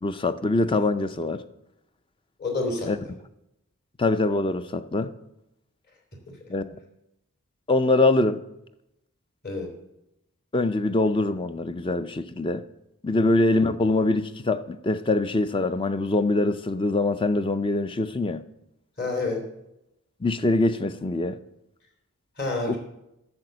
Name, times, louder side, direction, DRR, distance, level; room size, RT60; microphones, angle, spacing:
voice 1, 0.0-1.4 2.9-3.0 4.0-5.1 6.5-6.6 7.7-8.4 10.5-12.6 13.0-18.4 20.2-21.4 22.7-22.8, left 2 dB, 20° left, 0.4 m, -23 dB
voice 2, 2.4-2.9 9.4-9.7 19.0-19.4 22.4-22.8, left 3 dB, 45° left, 2.9 m, -28 dB
10.5 x 6.8 x 7.7 m
head